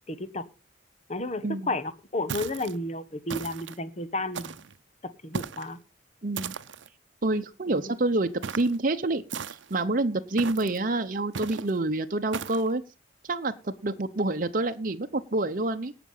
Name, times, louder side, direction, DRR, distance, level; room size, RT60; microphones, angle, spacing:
voice 1, 0.1-0.4 1.1-4.6 5.2-5.8 7.7-7.9, left 2 dB, 35° left, 1.1 m, -32 dB
voice 2, 1.4-1.7 6.2-6.5 7.2-9.2 9.5-12.8 13.2-15.9, right 2 dB, 45° right, 0.8 m, -27 dB
sound 1, 2.3-2.8 3.3-3.8 4.3-4.8 5.3-5.7 6.4-6.9 8.4-8.8 9.3-9.8 10.4-10.8 11.3-11.7 12.3-12.7, right 6 dB, 85° right, 0.7 m, -36 dB
17.5 x 6.0 x 5.5 m
head